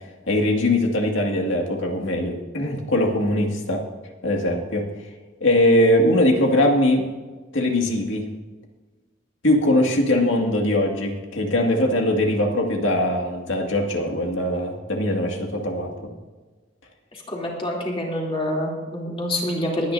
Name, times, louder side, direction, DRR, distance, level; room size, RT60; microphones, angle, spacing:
voice 1, 0.3-3.8 4.2-4.9 5.4-7.1 7.5-8.3 9.4-15.9, left 1 dB, 80° left, 1 dB, 2.2 m, -21 dB
voice 2, 17.1-19.9, left 1 dB, 30° left, -2 dB, 3.2 m, -26 dB
22.5 x 9.8 x 2.8 m, 1.3 s
head